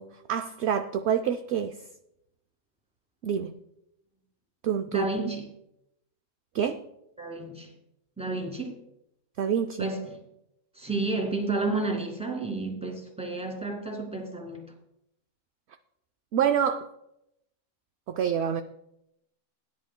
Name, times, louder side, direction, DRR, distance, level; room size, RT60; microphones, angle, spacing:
voice 1, 0.0-1.8 3.2-3.5 4.6-5.1 6.5-6.8 9.4-9.9 16.3-16.9 18.1-18.6, right 8 dB, 65° right, 0.7 m, -27 dB
voice 2, 4.9-5.5 7.2-7.7 8.2-8.8 9.8-10.2 10.8-14.7, right 3 dB, 5° right, 2.0 m, -31 dB
18.0 x 10.5 x 2.2 m
omnidirectional pair, 1.5 m